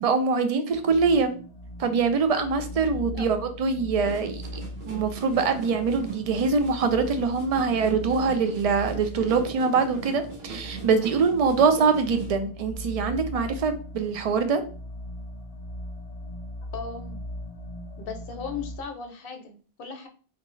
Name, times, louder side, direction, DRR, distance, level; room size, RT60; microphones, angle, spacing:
voice 1, 0.0-1.3 1.8-4.6 4.9-14.6, right 5 dB, 55° right, 8 dB, 0.4 m, -24 dB
sound 1, 0.7-18.8, left 1 dB, 45° left, 0.4 m, -40 dB
sound 2, 3.9-12.4, right 4 dB, 75° right, 1.1 m, -41 dB
voice 2, 16.7-17.3 18.0-20.1, left 5 dB, 65° left, 5 dB, 0.8 m, -37 dB
3.7 x 2.3 x 3.1 m, 0.40 s
omnidirectional pair, 1.1 m